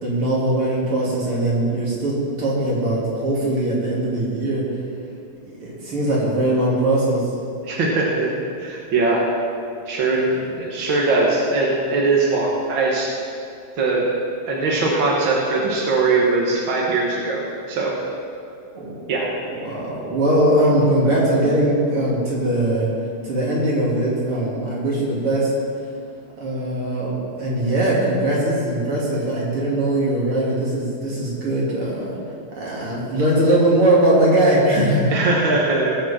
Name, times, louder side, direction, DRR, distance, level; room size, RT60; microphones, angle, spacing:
voice 1, 0.0-4.6 5.6-7.3 10.3-10.4 18.7-19.0 19.6-22.9 23.2-25.5 26.4-32.2 32.6-35.1, right 1 dB, 90° right, -5 dB, 3.6 m, -20 dB
voice 2, 7.6-8.3 8.6-9.2 9.9-10.3 10.6-13.1 13.8-14.0 14.5-17.4 17.7-17.9 19.1-19.3 35.1-35.9, right 3 dB, 65° right, -3 dB, 2.2 m, -20 dB
20.5 x 7.4 x 4.4 m, 2.5 s
omnidirectional pair, 2.3 m